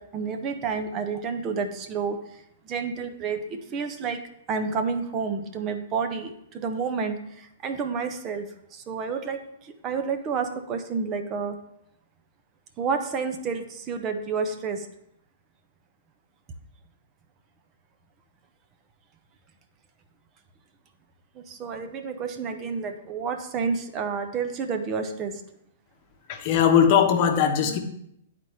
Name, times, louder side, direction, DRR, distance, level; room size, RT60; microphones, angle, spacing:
voice 1, 0.0-4.2 4.5-11.6 12.8-14.9 21.3-25.4, right 5 dB, 30° right, 6 dB, 0.8 m, -30 dB
voice 2, 26.3-27.8, left 8 dB, 45° left, 5 dB, 0.9 m, -20 dB
10.5 x 4.2 x 3.1 m, 0.75 s
figure-of-eight pair, 110°, 0 cm